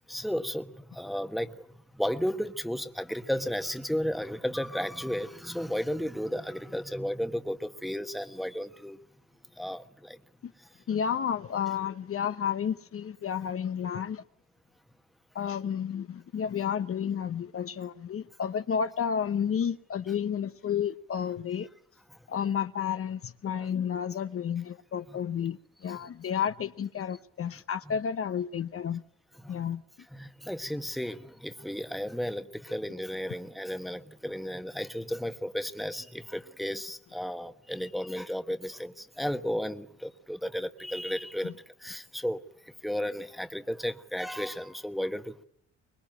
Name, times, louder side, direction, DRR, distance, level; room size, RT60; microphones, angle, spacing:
voice 1, 0.1-1.5 2.0-9.0 9.6-10.2 23.5-23.7 25.1-25.2 29.4-29.6 30.1-41.5 41.8-42.4 42.8-45.4, equal, ahead, 1.3 m, -33 dB
voice 2, 10.9-14.2 15.3-21.7 22.3-29.0 29.5-29.8 41.4-41.5, left 8 dB, 45° left, 0.9 m, -31 dB
24.5 x 21.0 x 9.0 m
cardioid pair, 90°, 30 cm